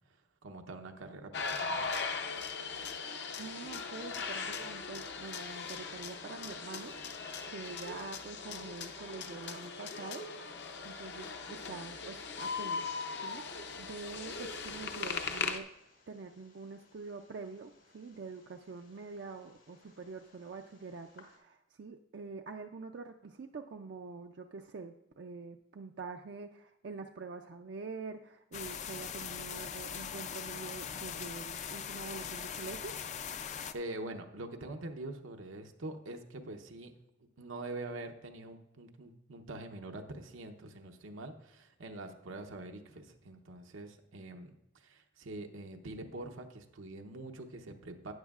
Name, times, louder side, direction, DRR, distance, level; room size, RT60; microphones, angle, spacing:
voice 1, 0.4-1.9 33.7-36.9 37.4-48.1, right 2 dB, 90° right, 4 dB, 0.8 m, -44 dB
sound 1, 1.3-15.6, left 5 dB, 55° left, 0.7 m, -40 dB
voice 2, 3.4-10.2 10.8-12.9 13.2-15.7 16.1-33.0, right 4 dB, 60° right, 3 dB, 0.4 m, -46 dB
Bird, 5.6-21.3, left 5 dB, 75° left, 2.8 m, -47 dB
sound 2, 28.5-33.7, left 7 dB, 35° left, 0.3 m, -41 dB
12.5 x 9.5 x 2.4 m, 0.86 s
head